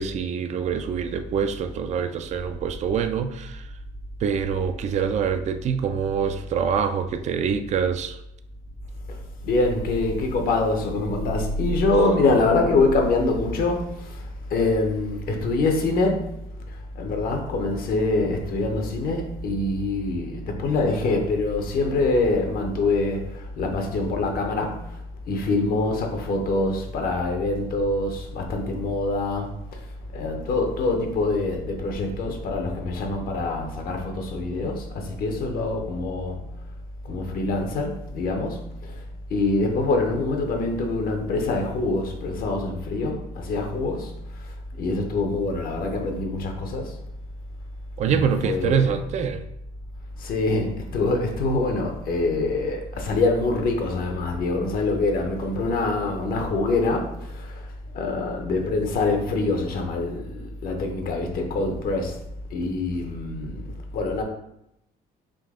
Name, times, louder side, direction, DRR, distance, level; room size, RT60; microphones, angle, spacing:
voice 1, 0.0-3.6 4.2-8.2 48.0-49.4, right 7 dB, 45° right, 0.4 m, -25 dB
voice 2, 9.4-16.3 16.7-25.0 25.3-29.8 30.1-36.5 37.0-39.0 39.3-47.0 48.1-48.9 50.2-57.6 57.9-62.2 62.5-64.2, left 2 dB, 60° left, 0.8 m, -25 dB
3.8 x 2.7 x 3.6 m
cardioid pair, 110°, 17 cm